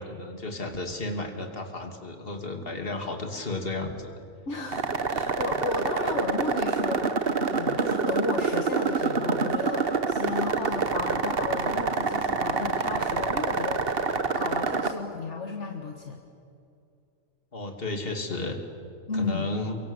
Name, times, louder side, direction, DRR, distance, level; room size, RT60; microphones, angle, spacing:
voice 1, 0.0-4.1 17.5-18.6 19.1-19.8, left 2 dB, 45° left, 4 dB, 2.8 m, -33 dB
voice 2, 4.5-7.1 7.4-14.0 14.4-16.2 19.1-19.5, left 4 dB, 60° left, 2 dB, 1.9 m, -33 dB
sound 1, 4.7-14.9, right 4 dB, 45° right, 1.4 m, -27 dB
29.5 x 23.5 x 8.2 m, 2.5 s
omnidirectional pair, 1.4 m